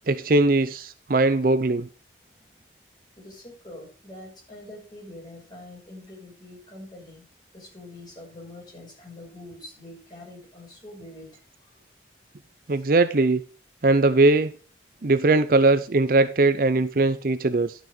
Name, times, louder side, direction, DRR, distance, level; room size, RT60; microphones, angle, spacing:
voice 1, 0.1-1.9 12.7-13.4 13.8-14.6 15.0-17.7, right 2 dB, 50° right, 0.6 m, -20 dB
voice 2, 3.2-7.2 7.5-11.3 12.7-12.8, left 1 dB, 25° left, 6.0 m, -44 dB
12.0 x 6.2 x 5.0 m
head